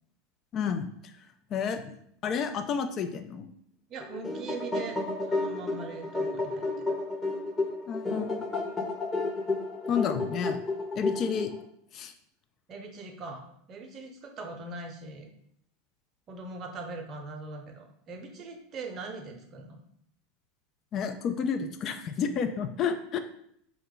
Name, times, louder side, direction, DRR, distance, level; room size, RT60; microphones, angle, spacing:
voice 1, 0.5-0.9 1.5-2.0 2.2-3.5 7.9-8.4 9.9-10.6 11.0-11.5 11.9-12.1 20.9-23.2, left 7 dB, 40° left, 8 dB, 0.3 m, -30 dB
voice 2, 3.9-5.0 5.3-6.8 12.7-15.3 16.3-19.8, right 3 dB, 40° right, 3 dB, 0.6 m, -41 dB
sound 1, 4.0-11.6, left 2 dB, 15° left, 0.8 m, -32 dB
2.8 x 2.3 x 3.8 m, 0.68 s
hypercardioid pair, 80°, 0 cm